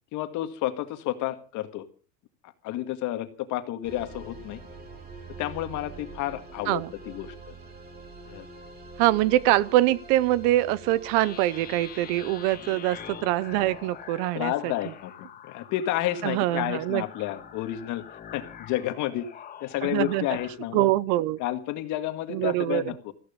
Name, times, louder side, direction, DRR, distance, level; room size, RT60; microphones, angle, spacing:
voice 1, 0.1-1.9 2.4-4.6 5.3-7.5 8.3-8.5 14.3-18.0 18.3-19.3 19.6-20.9 21.4-23.1, left 13 dB, 45° left, 2.1 m, -31 dB
sound 1, 3.8-14.5, right 3 dB, 20° right, 3.7 m, -46 dB
voice 2, 9.0-14.7 16.2-17.0 19.8-20.2 20.7-21.4 22.3-22.8, right 15 dB, 55° right, 0.8 m, -24 dB
sound 2, 11.1-20.6, left 8 dB, 20° left, 1.8 m, -45 dB
15.0 x 14.5 x 5.2 m
supercardioid pair, 155°, 41 cm